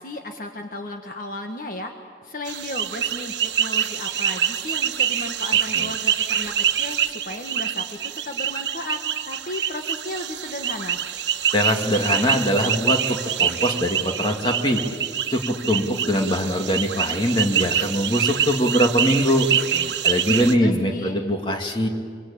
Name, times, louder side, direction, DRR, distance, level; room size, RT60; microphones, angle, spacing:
voice 1, 0.0-1.9 2.2-9.0 9.3-11.0 20.3-21.2, left 1 dB, 50° left, 4 dB, 1.6 m, -34 dB
sound 1, 2.5-20.6, right 9 dB, 80° right, 1.1 m, -25 dB
voice 2, 11.5-14.8 15.3-19.5 20.0-21.9, equal, 30° left, 3 dB, 2.2 m, -22 dB
24.5 x 24.5 x 8.8 m, 2.1 s
head